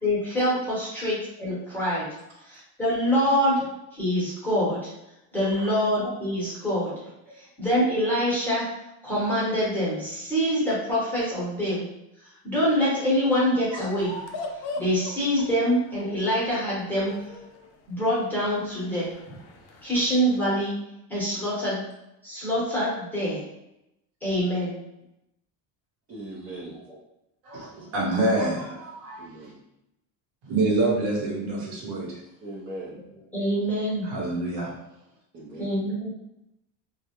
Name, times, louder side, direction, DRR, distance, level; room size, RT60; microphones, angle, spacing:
voice 1, 0.0-2.1 2.4-3.6 3.9-4.9 5.3-6.9 7.3-8.7 9.0-11.9 12.2-14.2 14.8-17.1 17.9-19.1 19.8-20.8 21.1-21.8 22.2-23.4 24.2-24.8 26.6-26.7 33.3-34.1 35.6-36.1, equal, 5° left, -8 dB, 0.9 m, -25 dB
sound 1, 14.0-20.4, left 2 dB, 60° left, 0.5 m, -41 dB
voice 2, 26.1-26.8 29.2-29.6 32.4-33.0 35.3-35.7, right 1 dB, 35° right, -6 dB, 0.6 m, -39 dB
voice 3, 27.4-29.3 30.4-32.2 34.0-34.7, right 2 dB, 65° right, -4 dB, 1.1 m, -26 dB
2.3 x 2.0 x 2.8 m, 0.87 s
cardioid pair, 140°, 44 cm